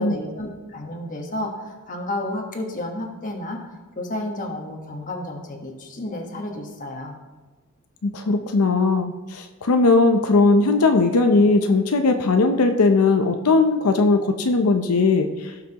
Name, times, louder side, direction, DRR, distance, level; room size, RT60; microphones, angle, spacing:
voice 1, 0.0-7.2, left 1 dB, 35° left, 2 dB, 1.2 m, -31 dB
voice 2, 8.0-15.5, left 3 dB, 85° left, 6 dB, 0.6 m, -18 dB
16.5 x 5.8 x 2.9 m, 1.2 s
head